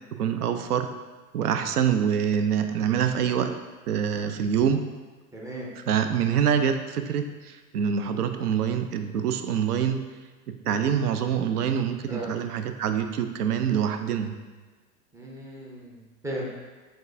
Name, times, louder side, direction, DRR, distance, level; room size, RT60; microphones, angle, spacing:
voice 1, 0.1-0.9 1.3-3.5 3.9-4.8 5.9-10.0 10.6-14.3, right 8 dB, 80° right, 8 dB, 0.5 m, -25 dB
voice 2, 5.3-5.7 12.1-12.3 15.1-16.5, right 1 dB, 5° right, -4 dB, 0.4 m, -36 dB
5.3 x 3.5 x 2.6 m, 1.3 s
hypercardioid pair, 95°, 46 cm